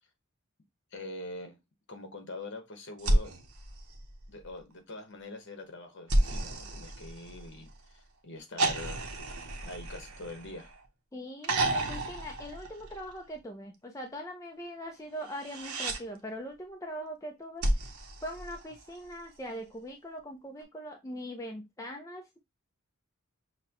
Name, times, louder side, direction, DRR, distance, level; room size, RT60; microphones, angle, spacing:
voice 1, 0.9-1.6 1.9-3.3 4.3-9.1 9.6-10.7, left 2 dB, 55° left, 1.1 m, -44 dB
sound 1, 3.0-4.6 6.1-7.8 8.6-10.9 11.4-13.3 15.2-16.0 17.6-19.1 20.6-20.7, right 1 dB, 85° right, 0.8 m, -32 dB
voice 2, 11.1-17.9 18.2-22.4, equal, 15° left, 0.5 m, -41 dB
5.8 x 2.2 x 2.9 m
head